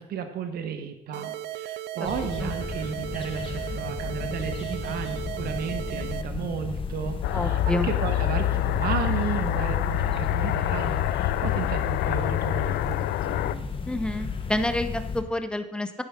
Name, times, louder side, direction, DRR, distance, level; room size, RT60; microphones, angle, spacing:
voice 1, 0.0-13.6, right 7 dB, 65° right, 7 dB, 1.3 m, -33 dB
sound 1, 1.1-6.2, right 13 dB, 85° right, 0.5 m, -36 dB
sound 2, 2.0-15.2, left 5 dB, 30° left, 1.2 m, -34 dB
sound 3, 7.2-13.5, left 14 dB, 80° left, 0.5 m, -26 dB
voice 2, 7.3-7.9 13.9-16.0, left 1 dB, 5° left, 9 dB, 0.9 m, -28 dB
10.5 x 9.3 x 3.7 m, 0.88 s
cardioid pair, 110°, 17 cm